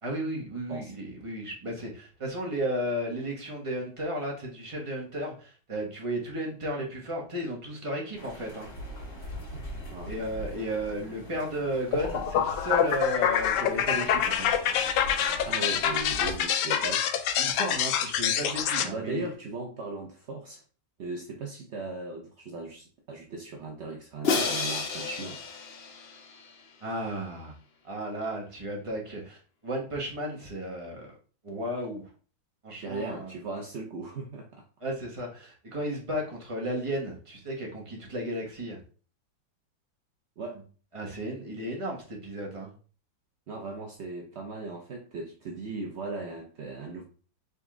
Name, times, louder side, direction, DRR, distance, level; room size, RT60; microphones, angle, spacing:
voice 1, 0.0-8.7 10.1-14.5 17.4-19.3 26.8-27.6 27.8-31.1 31.4-32.1 32.6-33.3 34.8-38.8 40.9-42.7, equal, 20° right, 1.1 m, -34 dB
sound 1, 8.1-16.4, equal, 35° left, 2.3 m, -42 dB
sound 2, 11.9-18.9, left 9 dB, 75° left, 1.1 m, -26 dB
voice 2, 15.4-17.1 18.8-20.6 21.0-25.4 32.8-34.6 40.4-40.6 43.5-47.0, right 3 dB, 65° right, 0.6 m, -37 dB
Crash cymbal, 24.2-26.5, left 4 dB, 55° left, 0.7 m, -30 dB
4.1 x 3.5 x 3.7 m
omnidirectional pair, 2.0 m